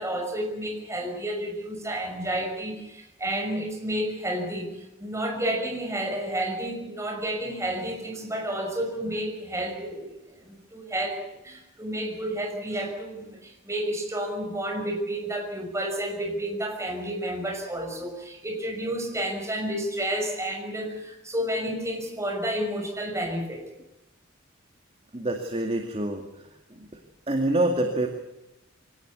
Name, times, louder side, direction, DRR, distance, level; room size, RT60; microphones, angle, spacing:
voice 1, 0.0-23.6, right 1 dB, 15° right, 3 dB, 5.9 m, -31 dB
voice 2, 25.1-27.0 27.3-28.1, right 1 dB, 30° right, 3 dB, 2.3 m, -27 dB
24.0 x 18.5 x 8.5 m, 0.91 s
head